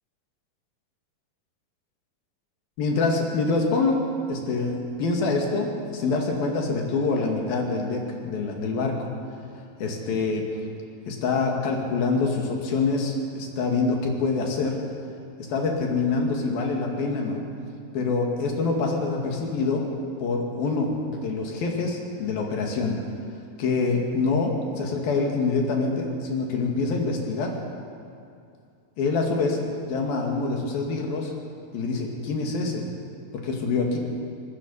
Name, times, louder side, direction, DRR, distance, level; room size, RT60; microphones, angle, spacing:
voice 1, 2.8-4.0 4.3-9.0 9.8-10.5 11.1-14.8 15.5-17.5 17.9-19.9 20.2-23.0 23.6-27.5 29.0-31.3 31.7-32.8 33.3-34.0, left 3 dB, 85° left, 1 dB, 4.1 m, -25 dB
24.0 x 20.0 x 5.6 m, 2.4 s
omnidirectional pair, 4.1 m